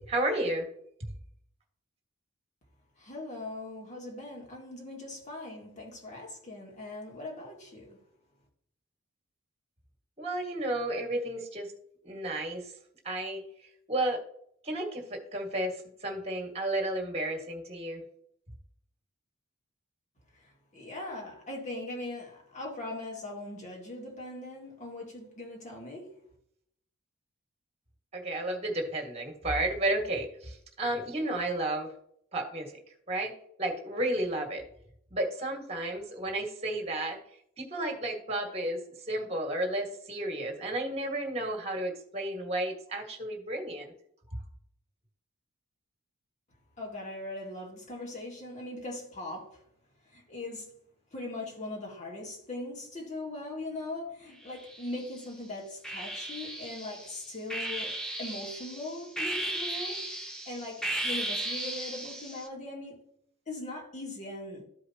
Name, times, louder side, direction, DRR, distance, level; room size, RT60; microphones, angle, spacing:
voice 1, 0.1-0.6 1.0-1.1 10.2-11.7 12.0-12.7 13.0-13.4 13.9-14.2 14.6-18.0 28.1-31.9 32.3-32.8 33.1-33.3 33.6-34.6 35.1-37.2 37.6-38.8 39.1-43.9, right 1 dB, 30° right, 1.8 m, -32 dB
voice 2, 3.0-8.0 20.7-26.2 46.8-49.6 50.1-50.7 51.1-63.1 63.5-64.6, left 2 dB, 35° left, 2.1 m, -40 dB
sound 1, 54.5-55.2 55.8-62.5, right 1 dB, 5° left, 0.9 m, -36 dB
13.5 x 5.0 x 2.9 m
head